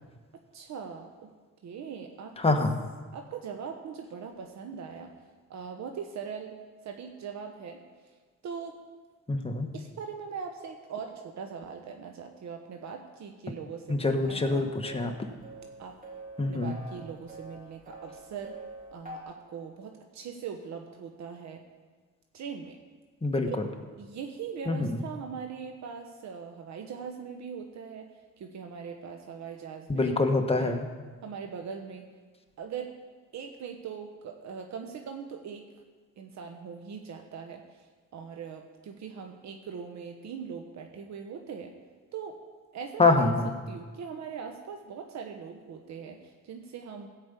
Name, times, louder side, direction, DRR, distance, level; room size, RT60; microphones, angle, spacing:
voice 1, 0.5-1.3 1.6-2.3 3.1-5.1 5.5-7.8 8.4-8.7 9.7-14.8 15.8-16.0 16.5-18.6 18.9-21.6 22.3-22.8 23.3-28.1 28.4-30.1 30.5-30.8 31.2-32.0 32.6-32.9 33.3-35.7 36.2-37.9 38.1-41.7 42.1-42.4 42.7-43.3 43.7-47.1, right 6 dB, 65° right, 4 dB, 1.1 m, -41 dB
voice 2, 2.4-2.7 9.3-9.7 13.9-15.1 16.4-16.7 23.2-23.7 24.7-25.0 29.9-30.9 43.0-43.5, left 3 dB, 20° left, 4 dB, 1.4 m, -25 dB
sound 1, 14.2-19.2, right 2 dB, 25° right, 3.6 m, -46 dB
15.5 x 5.2 x 8.4 m, 1.4 s
cardioid pair, 90°, 30 cm